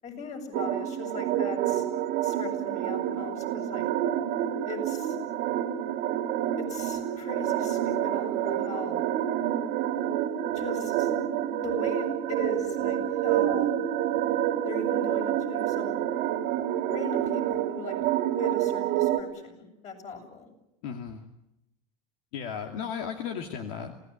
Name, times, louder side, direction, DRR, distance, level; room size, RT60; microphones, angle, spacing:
voice 1, 0.0-1.9 2.2-3.8 4.7-5.2 6.6-9.0 10.5-11.1 11.6-13.7 14.6-16.0 16.9-18.0 18.4-20.5, left 4 dB, 40° left, 3 dB, 7.7 m, -39 dB
sound 1, 0.5-19.2, right 11 dB, 60° right, 2.3 m, -28 dB
voice 2, 20.8-21.2 22.3-24.1, left 7 dB, 75° left, 5 dB, 2.5 m, -35 dB
27.5 x 17.5 x 9.2 m, 0.88 s
supercardioid pair, 115°, 18 cm